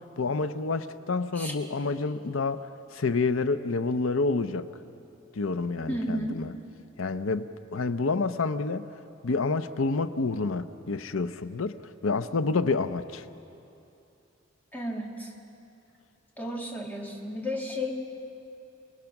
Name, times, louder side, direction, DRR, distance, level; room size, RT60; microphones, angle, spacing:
voice 1, 0.2-4.7 5.4-6.5 7.0-8.9 9.2-11.8 12.0-13.2, left 3 dB, 85° left, 11 dB, 0.7 m, -28 dB
voice 2, 5.9-6.4 14.7-15.3 16.4-17.9, equal, 10° left, -1 dB, 2.4 m, -33 dB
29.0 x 19.5 x 6.0 m, 2.7 s
head